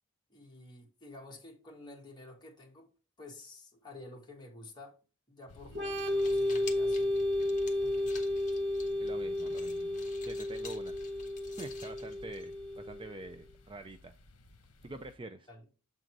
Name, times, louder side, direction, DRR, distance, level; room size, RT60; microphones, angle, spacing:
voice 1, 0.3-2.9 3.2-5.0 5.3-7.2 7.7-8.2 12.3-12.4 15.5-15.6, left 2 dB, 20° left, 1.8 m, -51 dB
sound 1, 5.5-15.2, left 2 dB, 65° left, 1.1 m, -55 dB
Organ, 5.7-13.2, left 1 dB, 50° right, 1.1 m, -33 dB
sound 2, 6.0-12.8, left 6 dB, 35° left, 1.2 m, -52 dB
voice 2, 9.0-11.0 11.6-14.1 14.8-15.5, right 2 dB, 25° right, 0.4 m, -46 dB
7.4 x 3.9 x 4.6 m
head